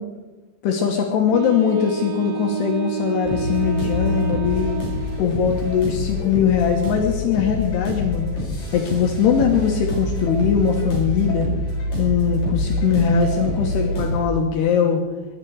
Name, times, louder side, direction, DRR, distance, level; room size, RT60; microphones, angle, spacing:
voice 1, 0.6-4.7 5.2-8.3 8.7-11.5 12.0-15.0, left 7 dB, 70° left, 2 dB, 3.1 m, -21 dB
Wind instrument woodwind instrument, 1.3-5.4, right 8 dB, 75° right, 4.3 m, -29 dB
sound 1, 3.2-14.2, left 2 dB, 45° left, 7.6 m, -26 dB
23.0 x 11.5 x 4.7 m, 1.2 s
omnidirectional pair, 5.2 m